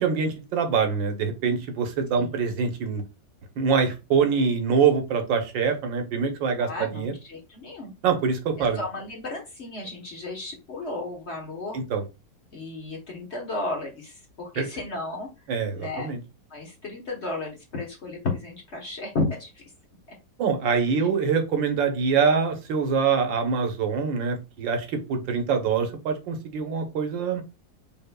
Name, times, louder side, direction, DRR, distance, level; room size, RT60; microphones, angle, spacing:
voice 1, 0.0-3.0 3.6-7.1 8.0-8.8 11.7-12.0 14.6-14.7 15.5-16.2 20.4-27.4, right 5 dB, 80° right, 6 dB, 1.6 m, -24 dB
voice 2, 6.6-7.9 8.6-11.8 12.5-15.3 15.7-16.1 16.5-19.6 21.0-21.1, left 2 dB, 45° left, 0 dB, 1.1 m, -33 dB
5.6 x 3.7 x 2.2 m, 0.27 s
omnidirectional pair, 2.0 m